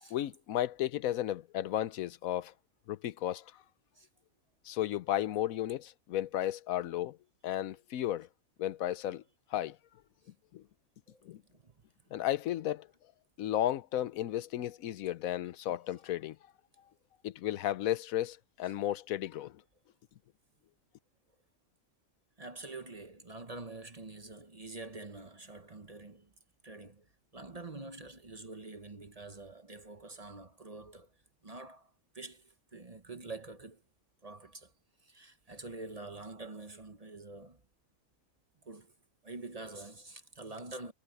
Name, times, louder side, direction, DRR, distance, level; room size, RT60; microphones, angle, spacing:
voice 1, 0.1-2.5 2.9-3.4 4.6-7.2 7.4-8.3 8.6-9.2 9.5-9.8 10.5-10.6 11.2-11.4 12.1-12.9 13.4-16.4 17.2-19.6, left 12 dB, 85° left, 1.1 m, -34 dB
voice 2, 22.4-26.3 26.6-31.1 31.4-33.8 34.2-34.7 35.0-37.6 38.6-38.9 39.2-40.9, right 3 dB, 30° right, 1.0 m, -46 dB
omnidirectional pair, 1.4 m